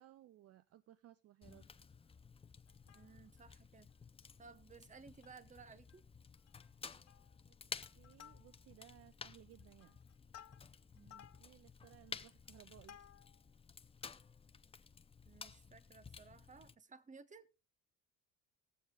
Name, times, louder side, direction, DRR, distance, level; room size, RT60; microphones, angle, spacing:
voice 1, 0.0-1.7 7.4-7.5 7.9-10.0 11.4-13.0, right 13 dB, 45° right, 0.5 m, -61 dB
Fire, 1.4-16.7, left 5 dB, 15° left, 0.5 m, -54 dB
Plucked string instrument, 2.7-3.5 3.9-4.0 4.2-4.5 4.9-5.6 5.9-6.0 6.3-6.7 7.1-7.4 7.8-8.9 9.4-13.5 14.0-14.1, left 10 dB, 45° left, 0.8 m, -61 dB
voice 2, 2.9-3.9 4.4-6.0 10.9-11.3 15.3-17.5, right 5 dB, 20° right, 0.9 m, -58 dB
20.5 x 7.2 x 2.3 m
supercardioid pair, 75°, 36 cm